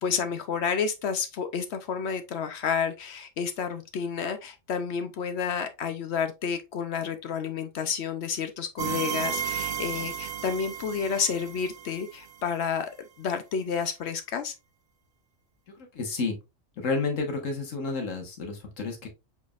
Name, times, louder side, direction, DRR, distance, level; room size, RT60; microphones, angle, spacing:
voice 1, 0.0-12.9 13.2-14.5, left 6 dB, 65° left, 0.8 m, -30 dB
sound 1, 8.8-12.5, right 8 dB, 65° right, 0.4 m, -33 dB
voice 2, 15.9-16.4 16.8-19.1, left 4 dB, 85° left, 1.6 m, -30 dB
5.1 x 4.1 x 2.4 m
omnidirectional pair, 1.3 m